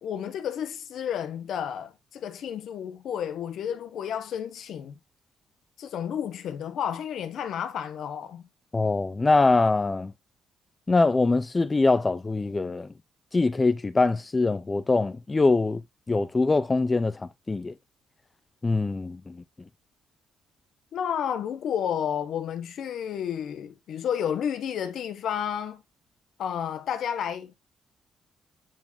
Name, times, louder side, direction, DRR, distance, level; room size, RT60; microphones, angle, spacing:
voice 1, 0.0-4.9 5.8-8.4 20.9-25.8 26.4-27.5, left 8 dB, 70° left, 1.3 m, -31 dB
voice 2, 8.7-10.1 10.9-12.9 13.3-15.8 16.1-17.7 18.6-19.4, left 3 dB, 25° left, 0.6 m, -23 dB
9.3 x 3.8 x 2.7 m
cardioid pair, 90°, 0 cm